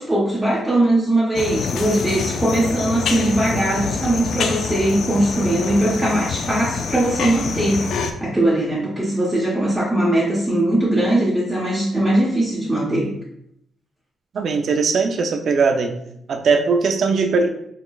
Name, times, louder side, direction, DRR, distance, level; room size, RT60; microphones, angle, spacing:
voice 1, 0.0-7.9 8.2-13.1, right 1 dB, 15° right, -6 dB, 0.7 m, -20 dB
sound 1, 1.3-8.1, left 5 dB, 70° left, 0.3 m, -26 dB
voice 2, 14.3-16.0 16.3-17.5, right 4 dB, 60° right, 5 dB, 0.5 m, -19 dB
3.9 x 3.6 x 2.3 m, 0.75 s
cardioid pair, 120°, 0 cm